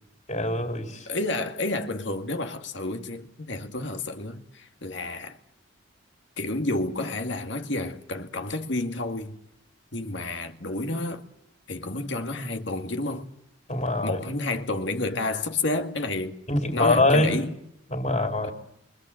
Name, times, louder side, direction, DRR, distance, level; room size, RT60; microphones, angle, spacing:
voice 1, 0.3-1.1 13.7-14.2 16.5-17.4 17.9-18.5, left 2 dB, 35° left, 4.0 m, -24 dB
voice 2, 1.1-5.4 6.4-9.4 9.9-11.2 11.7-13.3 14.0-16.4 16.7-17.5, left 2 dB, 60° left, 2.1 m, -30 dB
28.0 x 24.5 x 7.7 m
head